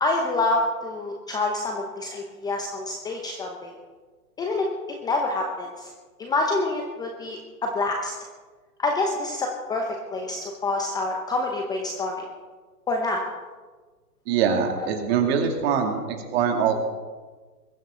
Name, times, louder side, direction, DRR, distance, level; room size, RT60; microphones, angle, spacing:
voice 1, 0.0-3.8 4.4-4.7 5.0-5.9 6.2-8.1 8.8-12.2 12.9-13.2 14.8-14.9, left 2 dB, 10° left, 2 dB, 0.8 m, -27 dB
voice 2, 14.3-16.8, right 7 dB, 40° right, 3 dB, 2.6 m, -23 dB
21.5 x 15.0 x 3.8 m, 1.4 s
hypercardioid pair, 135°, 48 cm